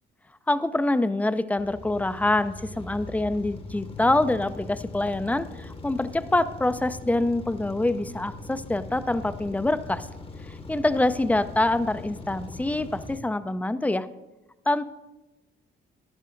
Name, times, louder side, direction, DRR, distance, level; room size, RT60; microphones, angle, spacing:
voice 1, 0.5-10.1 10.5-14.1 14.7-14.8, left 2 dB, 5° left, 12 dB, 0.4 m, -25 dB
sound 1, 1.6-13.2, left 2 dB, 30° left, 0.9 m, -41 dB
14.5 x 10.5 x 2.6 m, 1.1 s
cardioid pair, 90°, 20 cm